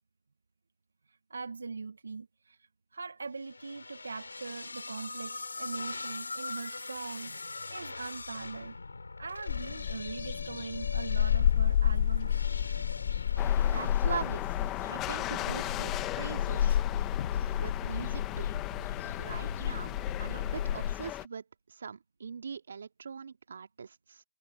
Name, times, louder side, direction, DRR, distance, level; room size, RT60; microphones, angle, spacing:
voice 1, 1.3-8.8 9.2-12.5, right 4 dB, 75° right, 1.8 m, -41 dB
sound 1, 3.4-14.7, left 3 dB, 85° left, 4.5 m, -42 dB
sound 2, 9.5-20.9, left 10 dB, 40° left, 0.6 m, -30 dB
sound 3, 13.4-21.3, left 15 dB, 15° left, 1.3 m, -38 dB
voice 2, 13.6-14.5 14.8-16.8 17.6-18.4 19.2-24.2, right 6 dB, 60° right, 2.5 m, -41 dB
hypercardioid pair, 160°, 0 cm